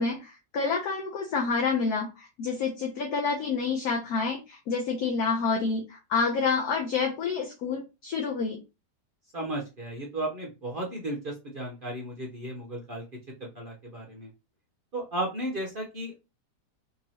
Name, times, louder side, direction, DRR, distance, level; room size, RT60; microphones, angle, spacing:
voice 1, 0.0-8.6, left 5 dB, 65° left, 0 dB, 1.1 m, -28 dB
voice 2, 9.3-13.0 13.4-14.3 14.9-16.2, right 1 dB, 50° right, -1 dB, 0.6 m, -34 dB
3.7 x 3.0 x 2.7 m, 0.27 s
omnidirectional pair, 1.9 m